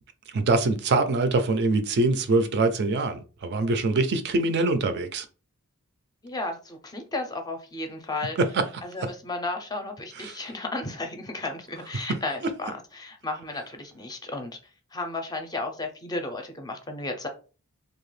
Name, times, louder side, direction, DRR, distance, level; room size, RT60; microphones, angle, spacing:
voice 1, 0.3-5.3 8.4-8.6 10.2-10.4, right 3 dB, 50° right, 0.4 m, -24 dB
voice 2, 6.2-8.4 8.8-14.6 14.9-17.3, left 2 dB, 20° left, 0.5 m, -34 dB
2.7 x 2.3 x 3.1 m
head